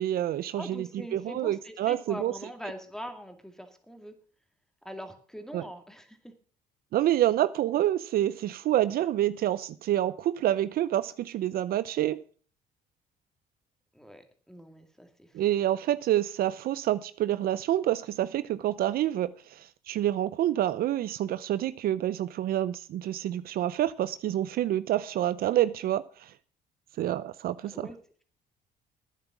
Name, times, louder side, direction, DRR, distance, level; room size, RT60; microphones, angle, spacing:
voice 1, 0.0-2.3 5.5-5.7 6.9-12.2 15.3-26.3 27.0-27.9, right 12 dB, 65° right, 0.6 m, -28 dB
voice 2, 0.6-4.1 4.8-6.3 13.9-15.3 27.7-28.0, equal, 5° left, 2.3 m, -43 dB
12.0 x 9.6 x 6.0 m
cardioid pair, 110°, 17 cm